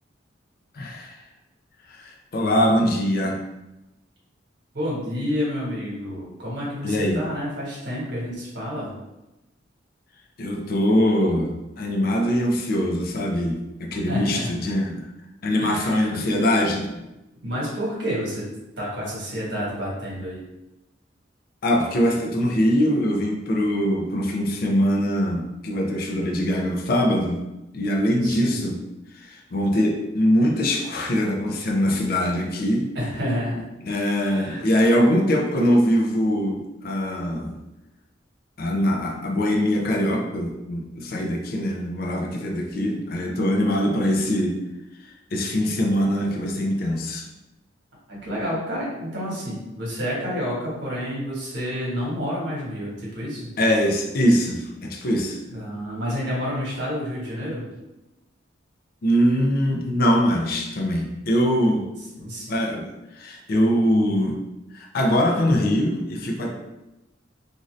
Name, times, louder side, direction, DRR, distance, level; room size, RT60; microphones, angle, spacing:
voice 1, 0.7-1.2 1.9-3.4 6.8-7.2 10.4-15.1 15.4-16.9 21.6-27.4 27.7-28.8 29.1-32.9 33.9-37.6 38.6-44.6 45.3-47.3 53.6-55.4 59.0-61.8 62.5-62.9 63.1-64.4 64.7-66.5, equal, 50° left, 1 dB, 0.5 m, -22 dB
voice 2, 4.7-8.9 14.1-14.5 15.6-16.3 17.4-18.4 18.8-20.4 28.2-28.7 32.9-33.5 33.9-34.6 48.1-53.5 55.5-57.7 62.2-62.5, equal, 65° right, -5 dB, 1.2 m, -29 dB
2.5 x 2.5 x 3.1 m, 0.97 s
head